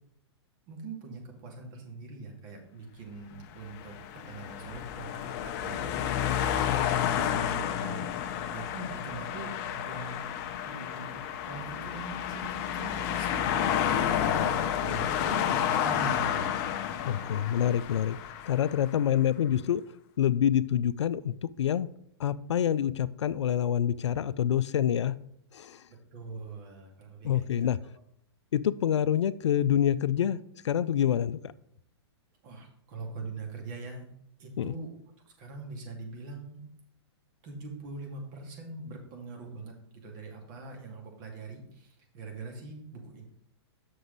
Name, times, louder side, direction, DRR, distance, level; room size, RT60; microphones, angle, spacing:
voice 1, 0.7-6.8 7.1-10.3 10.6-16.5 25.9-27.7 32.4-34.1 34.4-34.9 35.3-36.6 37.4-43.2, right 3 dB, 45° right, 2 dB, 2.3 m, -43 dB
sound 1, 3.5-18.9, left 9 dB, 40° left, 0.7 m, -30 dB
voice 2, 17.0-18.2 18.5-19.8 20.2-21.9 22.2-25.1 25.5-25.8 27.2-27.8 28.5-30.4 30.6-31.5 34.6-34.7, left 10 dB, 90° left, 16 dB, 0.4 m, -26 dB
7.7 x 6.2 x 4.0 m, 0.71 s
hypercardioid pair, 140°, 14 cm